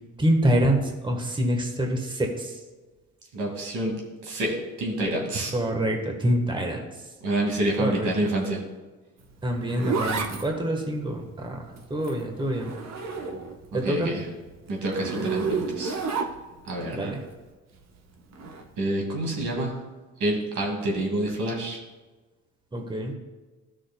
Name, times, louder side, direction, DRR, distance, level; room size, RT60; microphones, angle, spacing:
voice 1, 0.2-2.5 5.5-6.9 7.8-8.1 9.4-12.7 13.7-14.1 16.9-17.2 22.7-23.1, right 1 dB, 15° right, 2 dB, 1.3 m, -26 dB
voice 2, 3.3-4.0 4.2-5.5 7.2-8.6 13.7-14.3 14.7-16.0 16.7-17.1 18.8-19.8 20.2-21.8, right 1 dB, 80° right, -1 dB, 2.2 m, -27 dB
Zipper (clothing), 9.2-13.7 14.0-16.7 18.3-18.6, right 4 dB, 60° right, 1.1 m, -31 dB
13.5 x 6.3 x 2.2 m, 1.2 s
cardioid pair, 90°, 30 cm